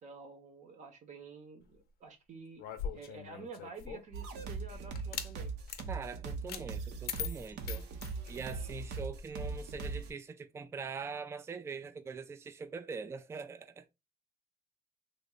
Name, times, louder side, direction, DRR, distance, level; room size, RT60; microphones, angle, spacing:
voice 1, 0.0-2.6 2.9-5.5, right 4 dB, 45° right, 0.8 m, -49 dB
sound 1, 2.6-4.2 4.9-5.3 5.7-5.9 6.5-6.6 7.1-8.6, left 8 dB, 65° left, 0.5 m, -41 dB
sound 2, 4.1-10.1, right 4 dB, 75° right, 0.7 m, -40 dB
voice 2, 5.9-7.9 8.3-13.9, right 5 dB, 15° right, 0.3 m, -43 dB
3.2 x 2.1 x 3.6 m
cardioid pair, 110°, 17 cm